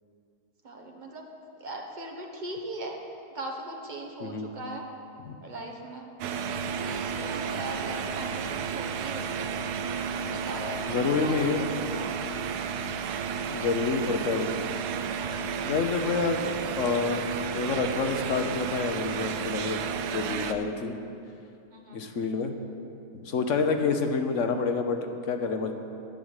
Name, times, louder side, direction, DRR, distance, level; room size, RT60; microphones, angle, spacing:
voice 1, 0.6-1.3 1.6-3.0 3.3-4.8 5.4-6.1 6.6-9.5 10.1-12.2 21.7-22.0, right 2 dB, 30° right, 1 dB, 1.1 m, -39 dB
sound 1, 6.2-20.5, right 6 dB, 80° right, 1.1 m, -32 dB
voice 2, 10.9-11.7 13.5-14.5 15.6-19.8 20.1-20.9 21.9-22.5 23.1-25.0 25.3-25.7, left 4 dB, 55° left, 5 dB, 1.1 m, -28 dB
10.5 x 6.5 x 9.0 m, 2.6 s
omnidirectional pair, 1.7 m